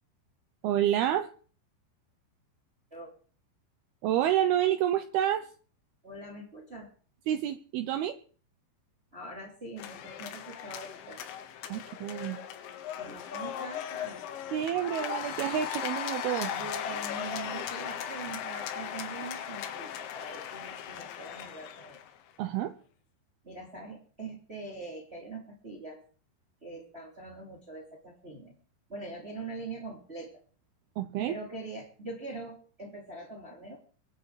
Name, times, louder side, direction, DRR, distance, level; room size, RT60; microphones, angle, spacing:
voice 1, 0.6-1.3 4.0-5.5 7.3-8.2 11.7-12.4 14.5-16.5 22.4-22.7 31.0-31.4, right 11 dB, 75° right, 10 dB, 2.4 m, -28 dB
voice 2, 6.0-6.9 9.1-11.2 13.0-14.2 16.5-22.0 23.4-26.0 26.6-28.5 28.9-30.3 31.3-33.8, right 2 dB, 15° right, 0 dB, 2.7 m, -43 dB
sound 1, 9.8-22.2, left 9 dB, 85° left, 3.8 m, -38 dB
23.5 x 8.3 x 4.9 m, 0.41 s
omnidirectional pair, 5.1 m